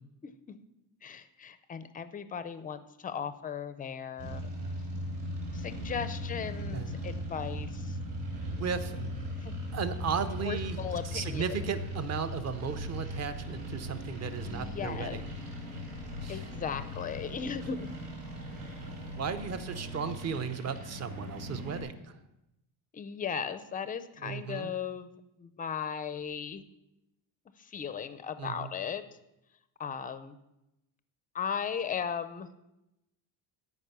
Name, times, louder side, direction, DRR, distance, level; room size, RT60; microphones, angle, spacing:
voice 1, 0.2-0.6 1.0-4.5 5.5-8.0 9.4-9.5 10.4-11.7 14.4-15.2 16.3-17.9 22.9-25.1 25.4-26.6 27.6-29.0 29.8-30.4 31.3-32.5, left 7 dB, 20° left, 12 dB, 0.4 m, -37 dB
sound 1, 4.2-21.8, equal, 55° right, 4.4 m, -38 dB
voice 2, 8.5-9.0 9.7-10.8 11.0-15.2 16.2-16.4 19.2-22.2 24.2-24.7 28.4-28.7, right 6 dB, 35° right, 10 dB, 0.7 m, -35 dB
13.0 x 5.4 x 6.7 m, 0.91 s
cardioid pair, 165°, 46 cm